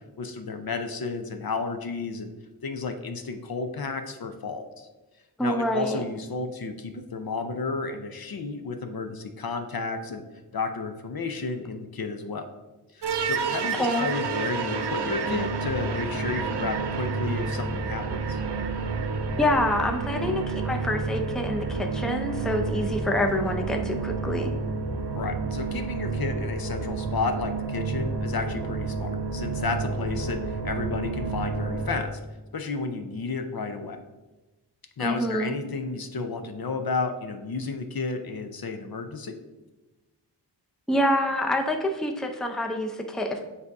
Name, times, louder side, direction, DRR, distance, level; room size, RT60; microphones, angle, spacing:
voice 1, 0.0-2.3 2.6-4.9 5.4-10.2 10.5-12.5 12.9-18.4 25.1-32.2 32.5-34.0 35.0-39.4, left 4 dB, 55° left, 7 dB, 0.6 m, -32 dB
voice 2, 5.4-6.0 13.8-14.1 19.4-24.5 35.0-35.5 40.9-43.4, left 1 dB, ahead, 3 dB, 0.5 m, -26 dB
sound 1, 13.0-32.0, right 4 dB, 70° right, 0.6 m, -30 dB
7.4 x 2.7 x 4.7 m, 1.1 s
wide cardioid pair, 80°, 42 cm